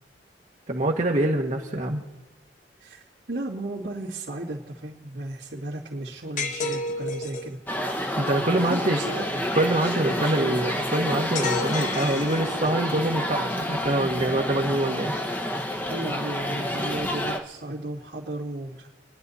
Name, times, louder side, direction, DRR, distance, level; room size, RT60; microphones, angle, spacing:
voice 1, 0.7-2.0 8.2-9.0 9.5-15.1, right 1 dB, 45° right, 1 dB, 1.4 m, -25 dB
voice 2, 2.8-7.6 8.5-9.4 9.8-10.6 15.9-18.9, right 1 dB, 75° right, -8 dB, 2.3 m, -34 dB
sound 1, 6.4-7.5 11.3-12.9, left 3 dB, 45° left, 1.2 m, -31 dB
sound 2, 7.7-17.4, equal, 10° left, 1.0 m, -29 dB
29.0 x 11.0 x 4.2 m, 1.1 s
head